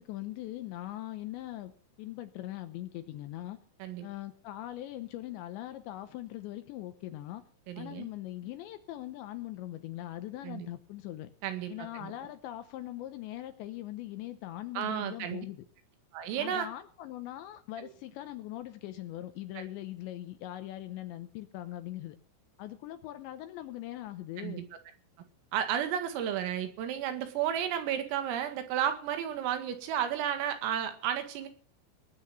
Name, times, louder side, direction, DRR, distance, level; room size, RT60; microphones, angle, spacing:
voice 1, 0.0-1.7 2.0-3.6 4.0-7.4 7.8-11.3 11.7-15.6 16.4-22.2 22.6-24.6, left 14 dB, 75° left, 10 dB, 2.7 m, -41 dB
voice 2, 7.7-8.1 10.4-10.7 11.4-12.1 14.8-15.5 16.1-16.7 17.8-17.9 19.6-19.7 24.4-24.7 25.5-31.5, right 9 dB, 80° right, 8 dB, 4.5 m, -33 dB
19.5 x 8.7 x 7.9 m, 0.42 s
omnidirectional pair, 5.9 m